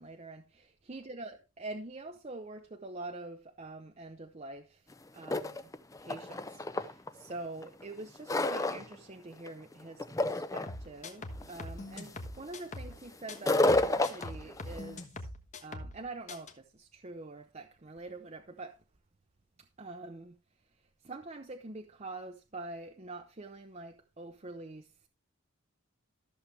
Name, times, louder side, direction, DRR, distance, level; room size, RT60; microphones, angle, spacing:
voice 1, 0.0-0.6 0.9-4.8 5.1-5.7 6.0-15.3 15.6-18.8 19.8-20.4 21.0-25.1, right 2 dB, 30° right, 0.7 m, -45 dB
sound 1, 4.9-5.0 5.2-7.1 7.6-9.0 9.3-9.7 10.0-10.8 11.4-11.6 12.0-12.3 13.3-14.9, left 2 dB, 15° left, 0.5 m, -30 dB
sound 2, 10.7-13.0 13.3-16.0 16.3-16.5, left 2 dB, 35° left, 1.3 m, -43 dB
14.0 x 6.6 x 3.3 m
head